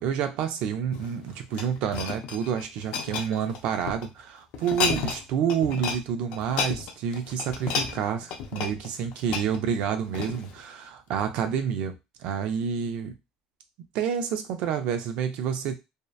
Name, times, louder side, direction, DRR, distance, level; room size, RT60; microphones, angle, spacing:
voice 1, 0.0-13.1 13.9-15.8, right 8 dB, 60° right, 7 dB, 0.4 m, -29 dB
sound 1, 0.8-4.1 4.5-5.2 5.5-6.0 6.3-10.6 11.1-11.3, left 6 dB, 60° left, 0.4 m, -32 dB
2.7 x 2.1 x 2.3 m, 0.24 s
cardioid pair, 160°, 2 cm